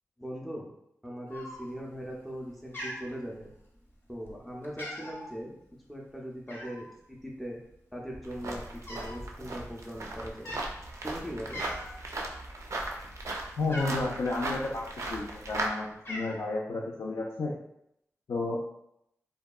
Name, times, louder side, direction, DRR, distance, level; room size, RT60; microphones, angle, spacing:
voice 1, 0.2-0.7 1.0-3.5 4.1-5.5 5.9-7.6 7.9-10.5 11.0-11.6, equal, ahead, -2 dB, 0.4 m, -40 dB
Cat, 1.3-1.9 2.3-2.5 2.7-3.8 4.2-4.4 4.6-5.3 6.5-6.9 7.7-7.8 8.0-9.2 9.5-9.7 10.3-10.7 11.2-11.3 11.5-12.0 12.4-14.1 14.9-15.5 15.8-16.4, left 1 dB, 40° left, 0.7 m, -41 dB
sound 1, 8.2-15.7, right 2 dB, 60° right, 0.4 m, -37 dB
voice 2, 13.6-14.8 15.1-17.5 18.3-18.8, left 2 dB, 75° left, -4 dB, 0.4 m, -32 dB
2.7 x 2.2 x 2.2 m, 0.77 s
wide cardioid pair, 80°, 6 cm